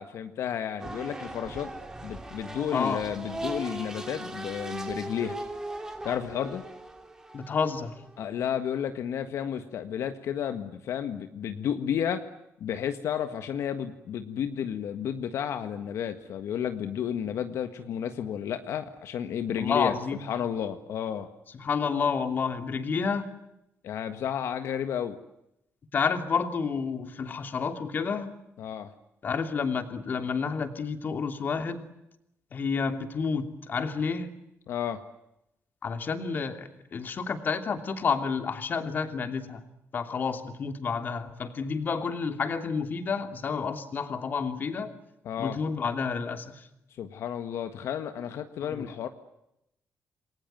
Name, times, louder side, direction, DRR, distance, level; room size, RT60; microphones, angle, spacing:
voice 1, 0.0-1.7 2.0-5.4 6.0-6.6 8.2-12.2 12.6-20.0 20.2-21.3 23.8-25.2 28.6-28.9 34.7-35.0 45.3-45.6 47.0-49.1, left 9 dB, 75° left, 8 dB, 1.7 m, -32 dB
sound 1, 0.8-8.7, right 2 dB, 10° right, 3.3 m, -39 dB
voice 2, 2.7-3.0 7.3-7.9 19.5-20.3 21.5-23.3 25.9-28.3 29.2-31.9 32.5-34.3 35.8-39.6 39.9-44.9 45.4-46.7 48.7-48.9, left 5 dB, 40° left, 8 dB, 3.0 m, -30 dB
29.0 x 21.5 x 9.3 m, 0.84 s
cardioid pair, 140°, 5 cm